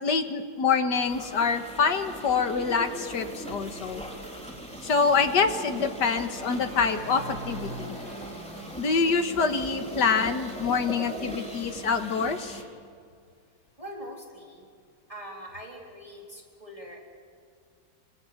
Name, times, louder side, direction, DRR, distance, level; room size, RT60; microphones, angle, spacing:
voice 1, 0.0-4.0 4.8-8.0 8.8-12.6, left 5 dB, 90° left, 7 dB, 2.1 m, -26 dB
sound 1, 1.1-12.6, right 1 dB, 5° left, 3.7 m, -40 dB
sound 2, 5.5-10.5, right 1 dB, 65° left, 8.7 m, -44 dB
voice 2, 13.8-14.7 15.1-17.0, equal, 20° right, -1 dB, 4.0 m, -42 dB
25.5 x 25.5 x 7.9 m, 2.2 s
omnidirectional pair, 1.8 m